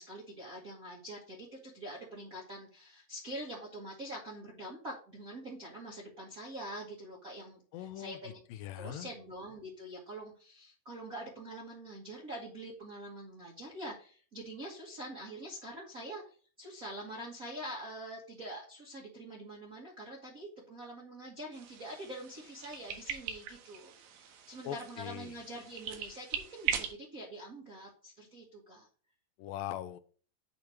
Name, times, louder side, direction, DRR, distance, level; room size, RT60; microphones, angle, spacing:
voice 1, 0.0-8.4 8.7-28.9, right 1 dB, 55° right, 0.9 m, -45 dB
voice 2, 7.7-8.2 8.5-9.1 24.6-25.3 29.4-30.0, left 12 dB, 85° left, 2.3 m, -41 dB
sound 1, 21.5-26.9, right 8 dB, 70° right, 2.2 m, -40 dB
8.4 x 2.9 x 6.2 m
omnidirectional pair, 4.0 m